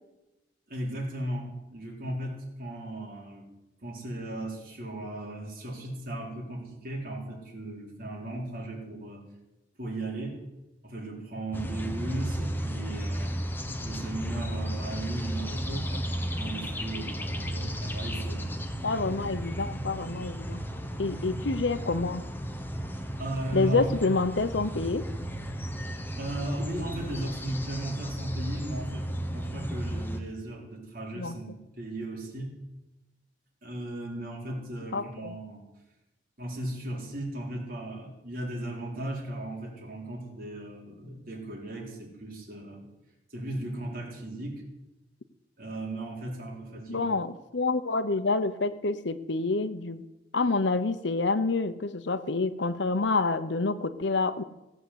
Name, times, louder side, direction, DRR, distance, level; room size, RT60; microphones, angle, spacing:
voice 1, 0.7-3.5 3.8-9.2 9.8-10.4 10.8-13.4 13.8-18.6 23.2-23.9 26.2-32.6 33.6-35.6 36.4-42.8 43.3-44.6 45.6-47.1, right 1 dB, 50° right, -1 dB, 4.0 m, -36 dB
sound 1, 11.5-30.2, equal, 10° left, 1.1 m, -34 dB
voice 2, 18.8-20.6 21.0-22.2 23.5-25.0 31.1-31.4 34.9-35.3 46.9-47.3 47.5-50.0 50.3-54.4, left 3 dB, 75° left, 13 dB, 0.9 m, -27 dB
17.0 x 8.1 x 8.0 m, 0.99 s
head